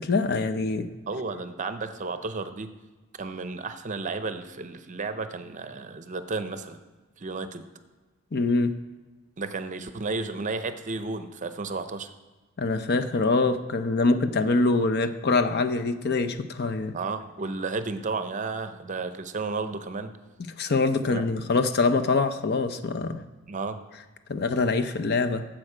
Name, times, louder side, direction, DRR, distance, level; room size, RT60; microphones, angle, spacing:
voice 1, 0.0-0.9 8.3-8.7 12.6-16.9 20.6-23.2 24.3-25.5, left 3 dB, 50° left, 9 dB, 0.6 m, -24 dB
voice 2, 1.1-2.7 3.2-6.8 7.2-7.7 9.4-12.1 16.9-20.1 21.1-21.3 23.5-23.8, right 3 dB, 35° right, 10 dB, 0.6 m, -33 dB
11.0 x 7.6 x 4.9 m, 1.3 s
head